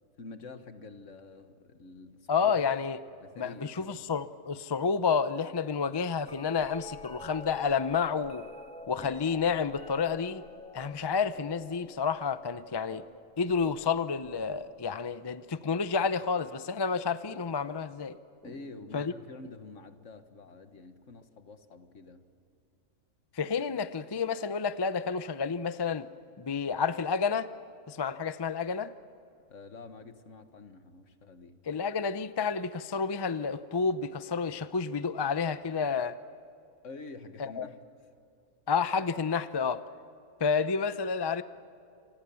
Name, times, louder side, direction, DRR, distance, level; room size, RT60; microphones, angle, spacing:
voice 1, 0.2-2.7 3.2-4.0 18.4-22.2 29.5-31.6 36.8-38.1, left 3 dB, 55° left, 9 dB, 1.7 m, -48 dB
voice 2, 2.3-3.0 3.4-8.4 8.9-10.4 10.7-13.0 13.4-18.2 18.9-19.1 23.3-26.1 26.4-27.5 27.9-28.9 31.7-36.2 37.4-37.6 38.7-39.8 40.4-41.4, left 5 dB, 35° left, 12 dB, 0.4 m, -30 dB
sound 1, 6.2-16.3 17.3-17.7 18.4-19.4 21.2-21.3, left 2 dB, 5° left, 1.4 m, -49 dB
28.0 x 26.0 x 7.1 m, 2.6 s
omnidirectional pair, 1.6 m